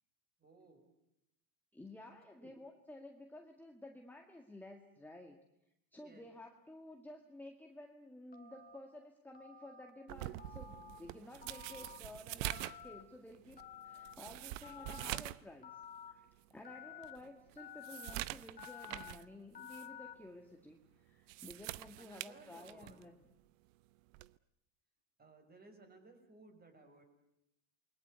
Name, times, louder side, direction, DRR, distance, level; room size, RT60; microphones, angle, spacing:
voice 1, 0.4-0.9 2.4-2.6 6.0-6.3 22.0-23.0 25.2-27.0, right 3 dB, 20° right, 6 dB, 6.1 m, -60 dB
voice 2, 1.7-5.5 5.9-23.2, left 1 dB, 5° left, 3 dB, 1.9 m, -53 dB
Telephone, 8.3-8.8 9.3-9.9 10.4-11.0 11.4-12.0 12.4-13.0 13.6-14.1 14.6-15.2 15.6-16.1 16.6-17.2 17.6-18.1 18.6-19.1 19.5-20.1, left 9 dB, 20° left, 2.2 m, -51 dB
sound 1, 10.1-15.5 15.8-15.9 16.5-16.6 17.0-19.3 19.6-19.9 21.1-23.0 24.1-24.4, right 17 dB, 60° right, 0.9 m, -45 dB
28.5 x 22.0 x 8.2 m, 0.82 s
supercardioid pair, 125°, 43 cm